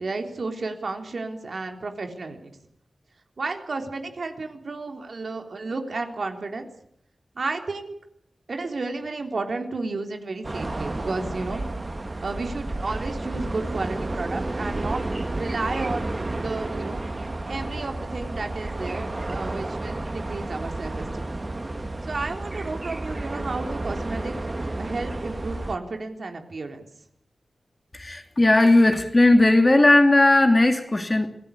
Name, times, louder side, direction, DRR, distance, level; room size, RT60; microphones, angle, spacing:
voice 1, 0.0-2.5 3.4-6.7 7.4-7.9 8.5-11.6 12.2-15.0 15.3-17.0 17.5-21.3 22.0-24.4 24.8-26.9, right 3 dB, 60° right, 4 dB, 3.7 m, -32 dB
sound 1, 10.4-25.8, right 2 dB, 30° right, 1.5 m, -31 dB
voice 2, 27.9-31.3, left 2 dB, 25° left, 6 dB, 2.6 m, -17 dB
26.0 x 18.5 x 8.5 m, 0.71 s
wide cardioid pair, 110°, 0 cm